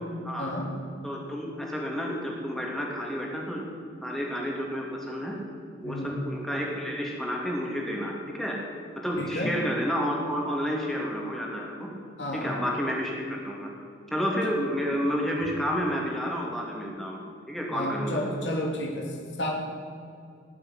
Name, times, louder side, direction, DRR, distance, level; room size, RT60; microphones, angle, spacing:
voice 1, 1.0-3.7 4.0-5.4 5.8-8.6 9.0-11.9 12.3-13.7 14.1-17.2 17.5-18.2, equal, ahead, -2 dB, 2.9 m, -30 dB
voice 2, 9.2-9.5 12.2-12.6 17.7-19.5, left 1 dB, 70° left, -1 dB, 2.8 m, -31 dB
19.5 x 7.6 x 9.7 m, 2.3 s
head